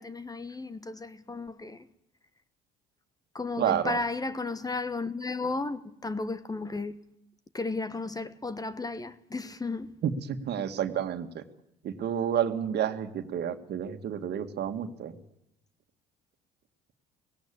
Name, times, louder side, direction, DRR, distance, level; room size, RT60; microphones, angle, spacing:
voice 1, 0.0-1.9 3.3-7.0 7.5-10.0, left 3 dB, 20° left, 1.2 m, -34 dB
voice 2, 3.6-4.0 10.0-11.4 11.8-15.1, right 9 dB, 60° right, 1.9 m, -30 dB
17.5 x 17.0 x 8.7 m
supercardioid pair, 75°, 20 cm